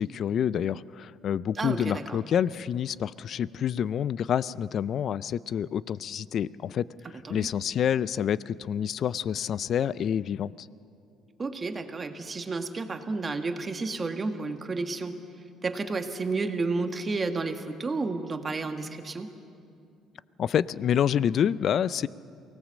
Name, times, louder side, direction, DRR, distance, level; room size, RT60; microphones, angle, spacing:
voice 1, 0.0-10.7 20.4-22.1, left 9 dB, 55° left, 19 dB, 0.4 m, -28 dB
voice 2, 1.6-2.2 7.2-7.5 11.4-15.1 15.6-19.3, right 3 dB, 30° right, 6 dB, 1.6 m, -31 dB
24.0 x 18.0 x 7.4 m, 2.5 s
cardioid pair, 95°, 0 cm